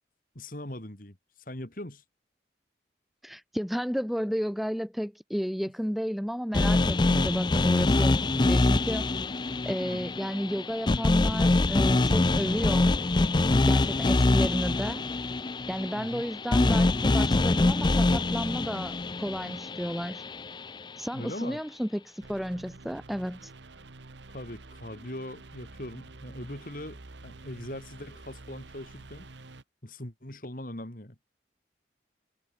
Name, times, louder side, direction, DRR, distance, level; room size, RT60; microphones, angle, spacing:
voice 1, 0.3-1.2 1.5-2.0 9.9-10.0 16.0-16.2 21.1-21.6 24.3-29.3 29.8-31.1, left 1 dB, 45° left, 3.0 m, -40 dB
voice 2, 3.2-9.1 9.6-12.9 13.6-15.0 15.7-20.2 21.0-23.5, equal, ahead, 0.9 m, -32 dB
sound 1, 6.5-20.7, left 2 dB, 25° left, 0.4 m, -25 dB
sound 2, 22.2-29.6, right 2 dB, 75° right, 1.3 m, -48 dB
head